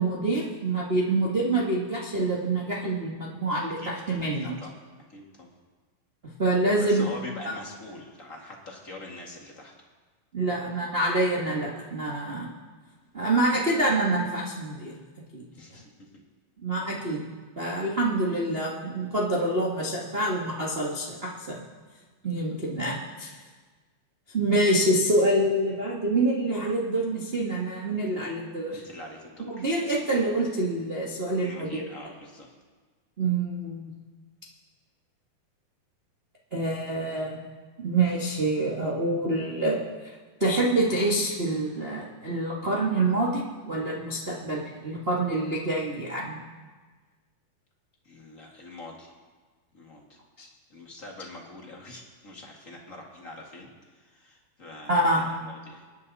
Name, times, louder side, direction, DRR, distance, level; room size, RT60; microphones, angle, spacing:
voice 1, 0.0-4.5 6.4-7.0 10.3-12.5 13.1-14.9 15.3-15.4 15.7-15.8 16.6-17.3 17.6-21.6 22.2-23.3 24.3-28.8 29.5-31.7 33.2-33.8 36.5-37.4 37.8-39.8 40.4-46.4 50.4-50.5 54.9-55.2, right 2 dB, 90° right, -4 dB, 0.5 m, -26 dB
voice 2, 4.3-4.7 5.1-5.5 6.7-9.7 15.5-15.9 22.2-22.3 28.7-29.7 31.4-32.5 48.0-49.1 49.7-50.2 50.7-55.9, left 2 dB, 30° left, -1 dB, 1.5 m, -44 dB
28.0 x 9.7 x 4.1 m, 1.4 s
omnidirectional pair, 4.1 m